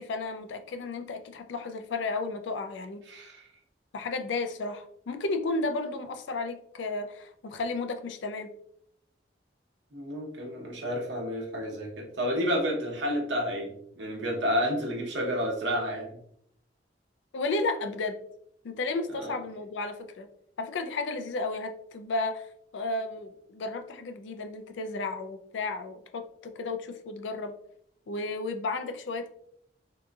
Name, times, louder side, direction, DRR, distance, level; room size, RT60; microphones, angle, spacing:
voice 1, 0.0-3.0 3.9-8.5 17.3-18.2 18.6-20.3 20.6-27.5 28.1-29.3, left 3 dB, 85° left, 8 dB, 0.4 m, -33 dB
voice 2, 3.1-3.5 9.9-16.1 19.1-19.4, equal, 85° right, -1 dB, 1.0 m, -30 dB
3.6 x 2.8 x 2.3 m, 0.70 s
head